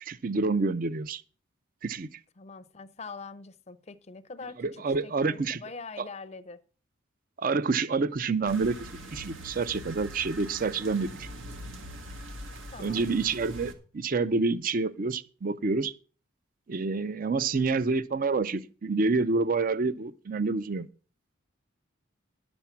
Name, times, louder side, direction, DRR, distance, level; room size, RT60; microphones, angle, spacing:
voice 1, 0.0-1.2 1.8-2.1 4.6-5.6 7.4-11.3 12.8-15.9 16.7-20.9, right 4 dB, 45° right, 0.5 m, -28 dB
voice 2, 2.4-6.6 12.7-13.1, left 4 dB, 30° left, 0.6 m, -43 dB
sound 1, 8.5-13.7, right 1 dB, 85° right, 1.5 m, -42 dB
11.0 x 7.1 x 5.9 m
head